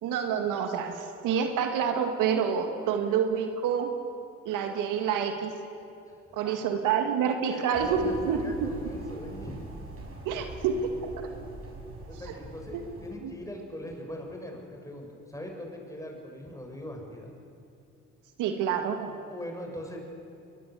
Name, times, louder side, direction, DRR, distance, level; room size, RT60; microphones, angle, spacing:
voice 1, 0.0-3.9 4.5-5.5 6.3-8.7 10.3-11.3 12.2-12.3 12.8-12.9 13.2-13.3 18.4-19.2, right 7 dB, 75° right, 6 dB, 2.0 m, -28 dB
voice 2, 7.5-9.6 12.1-17.3 19.3-20.1, left 1 dB, 10° left, 1 dB, 7.1 m, -41 dB
sound 1, 7.7-13.1, right 2 dB, 45° right, 7.1 m, -43 dB
22.5 x 21.5 x 8.5 m, 2.6 s
supercardioid pair, 60°, 32 cm